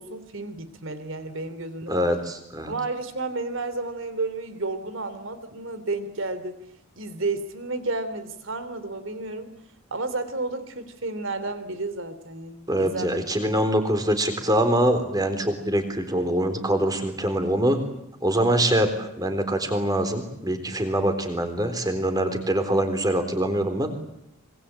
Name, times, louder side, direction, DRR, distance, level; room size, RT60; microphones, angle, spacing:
voice 1, 0.0-1.9 2.7-6.6 7.0-9.5 9.9-13.5, right 3 dB, 65° right, 12 dB, 3.2 m, -32 dB
voice 2, 1.9-2.7 12.7-17.8 18.2-23.9, right 1 dB, 20° right, 8 dB, 3.8 m, -24 dB
25.5 x 23.0 x 8.7 m, 0.80 s
head